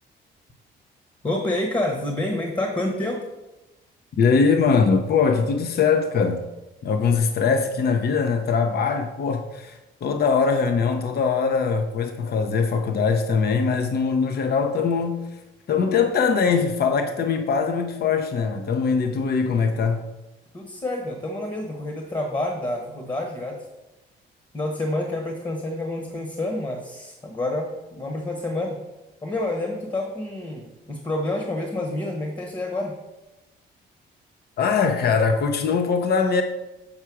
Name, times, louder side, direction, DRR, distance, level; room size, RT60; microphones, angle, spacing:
voice 1, 1.2-3.2 20.5-23.6 24.5-28.8 29.2-32.9, left 1 dB, 20° left, 1.1 m, -28 dB
voice 2, 4.2-6.5 6.8-15.4 15.7-20.0 34.6-36.4, left 5 dB, 55° left, 0.7 m, -22 dB
7.4 x 4.6 x 4.8 m
cardioid pair, 90°, 20 cm